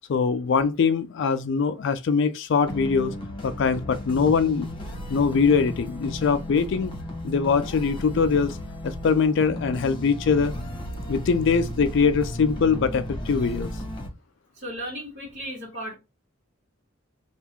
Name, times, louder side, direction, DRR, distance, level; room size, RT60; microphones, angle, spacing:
voice 1, 0.1-3.1 3.4-4.7 5.1-6.9 7.2-8.6 8.8-10.5 11.1-13.7, left 5 dB, 60° left, 0.3 m, -22 dB
sound 1, 2.6-14.1, left 1 dB, 25° left, 1.0 m, -35 dB
voice 2, 14.5-15.9, right 1 dB, 55° right, 1.5 m, -35 dB
3.5 x 2.4 x 4.4 m
head